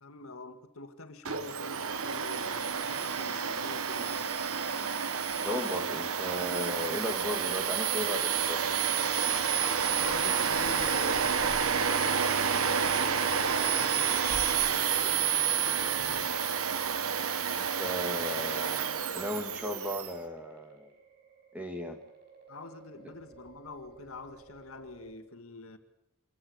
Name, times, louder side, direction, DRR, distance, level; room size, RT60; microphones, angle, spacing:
voice 1, 0.0-4.3 9.9-16.3 22.5-25.8, left 2 dB, 70° left, 2.0 m, -46 dB
Domestic sounds home sounds, 1.2-20.1, right 7 dB, 75° right, 1.2 m, -29 dB
voice 2, 5.4-8.6 17.6-20.9 21.5-22.0, left 1 dB, 5° right, 1.9 m, -36 dB
sound 1, 10.4-16.4, left 1 dB, 15° left, 4.5 m, -49 dB
sound 2, 17.8-25.2, right 6 dB, 45° right, 5.2 m, -53 dB
26.5 x 14.5 x 8.6 m
head